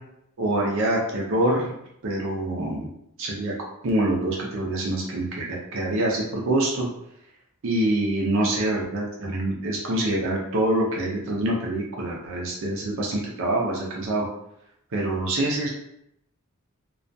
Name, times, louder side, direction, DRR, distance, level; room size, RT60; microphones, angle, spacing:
voice 1, 0.4-1.7 2.0-2.9 3.2-3.5 3.8-6.9 7.6-14.2 14.9-15.7, right 1 dB, 60° right, -3 dB, 0.5 m, -25 dB
2.3 x 2.2 x 2.6 m, 0.76 s
head